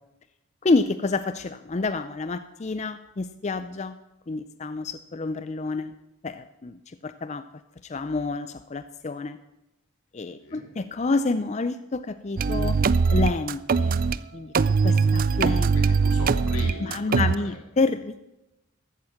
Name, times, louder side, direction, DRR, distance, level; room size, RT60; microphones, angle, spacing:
voice 1, 0.6-3.9 4.3-5.9 6.2-7.4 7.8-9.4 10.1-12.8 13.1-14.0 14.3-14.5 14.8-15.7 16.8-18.2, left 3 dB, 30° left, 12 dB, 0.4 m, -28 dB
sound 1, 12.4-14.2 14.5-17.3, right 4 dB, 40° right, 0.4 m, -21 dB
voice 2, 15.7-17.6, left 1 dB, 90° left, 1 dB, 3.7 m, -39 dB
14.0 x 9.2 x 7.2 m, 0.94 s
head